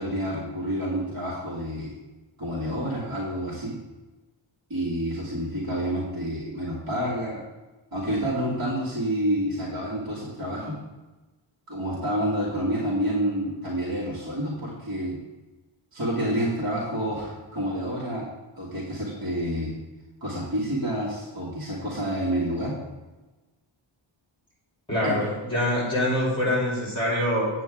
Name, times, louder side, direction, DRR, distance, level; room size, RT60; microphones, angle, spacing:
voice 1, 0.0-1.9 2.4-3.8 4.7-7.4 7.9-10.8 11.7-15.2 15.9-18.3 18.6-19.7 20.2-22.8 25.0-25.3, equal, 45° right, -7 dB, 2.0 m, -28 dB
voice 2, 24.9-27.5, left 1 dB, 10° left, -5 dB, 3.0 m, -24 dB
8.8 x 7.2 x 3.6 m, 1.2 s
wide cardioid pair, 125°, 48 cm